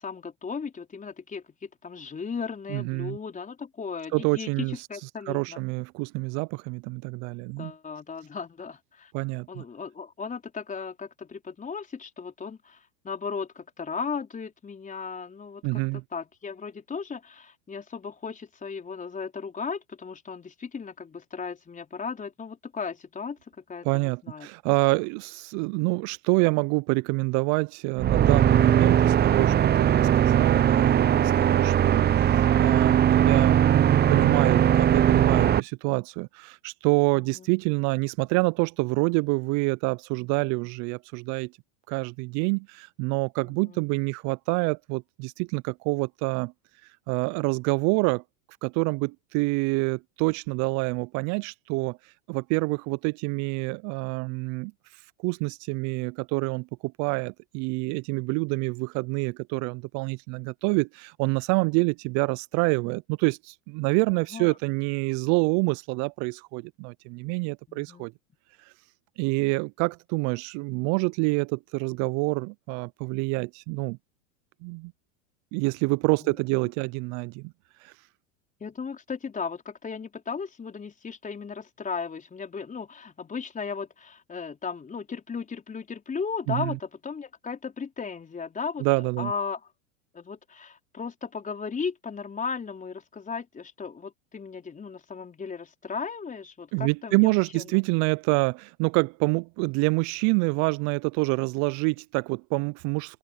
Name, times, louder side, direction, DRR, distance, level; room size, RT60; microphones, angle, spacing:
voice 1, 0.0-5.6 7.6-9.1 9.5-23.4 23.7-24.5 37.1-37.5 43.4-43.8 64.1-64.6 67.7-68.1 76.2-76.4 78.6-88.9 89.2-89.6 90.1-97.8, left 5 dB, 20° left, 4.7 m, -36 dB
voice 2, 2.7-3.2 4.1-7.7 9.1-9.6 15.6-16.0 23.8-41.5 41.9-46.5 46.8-48.2 48.6-68.1 68.6-68.7 69.2-74.0 74.6-74.9 75.5-77.5 77.8-77.9 86.5-86.8 88.8-89.3 96.7-103.2, right 29 dB, 50° right, 0.5 m, -27 dB
sound 1, 28.0-35.6, right 10 dB, 25° right, 0.9 m, -20 dB
open air
hypercardioid pair, 100°, 37 cm